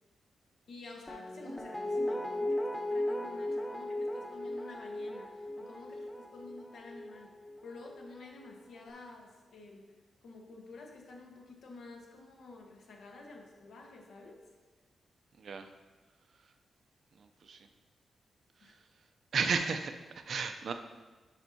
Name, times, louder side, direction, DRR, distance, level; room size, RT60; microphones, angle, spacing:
voice 1, 0.7-7.3 7.6-9.8 10.2-14.4 18.6-18.8, left 3 dB, 80° left, 0 dB, 1.2 m, -50 dB
Guitar, 1.1-8.1 8.4-8.5, left 1 dB, 5° left, 0.6 m, -37 dB
voice 2, 15.4-15.7 17.2-17.7 18.6-18.7 19.3-20.7, right 5 dB, 50° right, 7 dB, 0.4 m, -34 dB
10.5 x 5.3 x 2.7 m, 1.3 s
wide cardioid pair, 175°, 0 cm